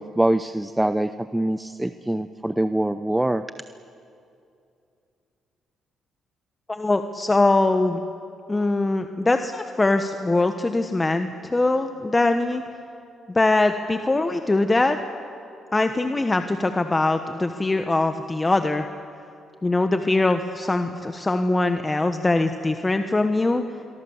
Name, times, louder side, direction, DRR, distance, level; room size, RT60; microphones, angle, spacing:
voice 1, 0.0-3.4, right 1 dB, 10° right, 11 dB, 0.6 m, -24 dB
voice 2, 6.7-8.0 8.5-12.6 13.3-15.0 15.7-18.8 19.6-23.6, left 2 dB, 20° left, 7 dB, 1.1 m, -22 dB
27.5 x 23.0 x 7.2 m, 2.6 s
cardioid pair, 90°, 0 cm